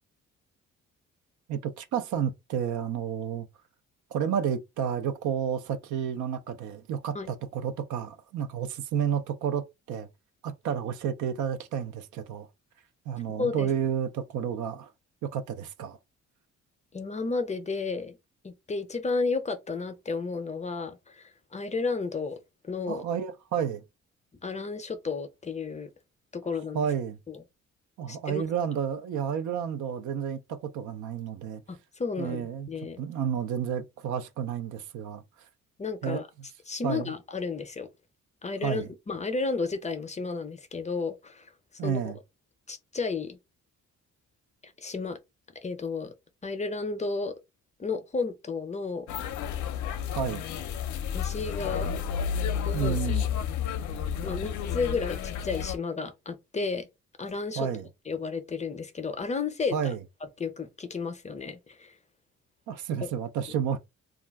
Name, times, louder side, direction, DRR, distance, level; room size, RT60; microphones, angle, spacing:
voice 1, 1.5-3.5 4.1-10.1 10.4-12.5 13.1-14.9 15.2-16.0 22.9-23.8 26.7-27.2 28.0-31.6 32.2-32.7 33.0-35.2 36.0-36.2 36.8-37.1 38.6-38.9 41.8-42.2 50.2-50.4 52.7-53.3 57.6-57.9 59.7-60.0 62.7-63.8, right 8 dB, 75° right, 0.5 m, -31 dB
voice 2, 13.4-13.7 16.9-18.2 18.4-22.4 22.6-23.0 24.4-25.9 26.3-26.9 27.3-27.4 28.1-28.4 31.7-33.0 35.8-36.3 36.7-37.9 38.4-41.5 41.8-42.0 42.7-43.4 44.6-45.2 45.6-46.1 46.4-47.3 47.8-49.1 51.1-51.9 52.6-53.1 54.2-56.9 57.2-57.7 58.1-59.8 60.4-61.9, left 4 dB, 25° left, 0.5 m, -32 dB
sound 1, 49.1-55.8, left 8 dB, 70° left, 0.5 m, -31 dB
2.4 x 2.2 x 3.3 m
cardioid pair, 90°, 30 cm